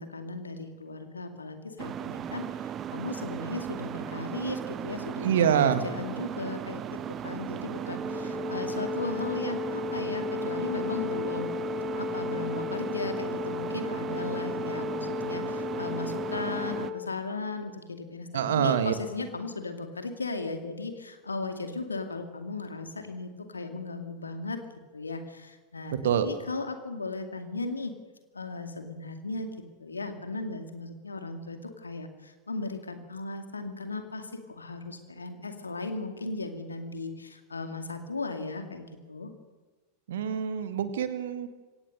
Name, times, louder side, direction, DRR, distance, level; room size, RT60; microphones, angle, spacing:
voice 1, 0.0-11.5 11.9-24.6 24.9-25.9 26.2-27.9 28.3-29.5 29.8-39.3, left 3 dB, 75° left, 6 dB, 2.3 m, -36 dB
sound 1, 1.8-16.9, right 9 dB, 30° right, 0.7 m, -37 dB
voice 2, 5.2-5.9 18.3-18.9 26.0-26.3 40.1-41.5, right 9 dB, 60° right, 10 dB, 1.7 m, -25 dB
Wind instrument woodwind instrument, 7.9-17.0, left 5 dB, 5° right, 4.2 m, -35 dB
23.0 x 18.0 x 6.7 m, 1.2 s
figure-of-eight pair, 90°, 0 cm